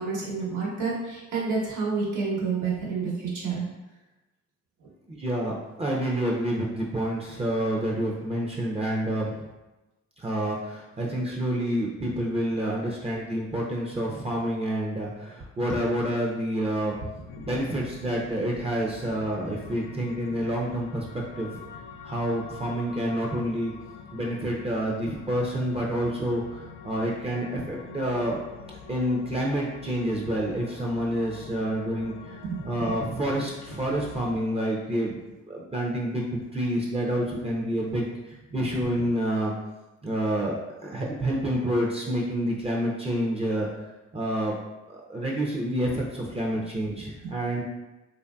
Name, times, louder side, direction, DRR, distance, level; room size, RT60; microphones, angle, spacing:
voice 1, 0.0-3.7 12.7-12.8 15.7-15.8 32.4-32.6, right 4 dB, 80° right, -4 dB, 1.1 m, -29 dB
voice 2, 5.1-9.4 10.2-16.9 17.4-21.1 21.4-21.5 22.0-23.7 24.1-28.4 28.9-32.1 32.6-35.2 35.5-38.1 38.5-39.5 40.0-40.5 40.8-43.7 44.1-44.5 44.9-47.6, right 1 dB, 20° right, -3 dB, 0.5 m, -28 dB
sound 1, 17.3-34.2, left 5 dB, 85° left, 0.5 m, -45 dB
3.1 x 2.6 x 2.2 m, 1.0 s
cardioid pair, 90°, 30 cm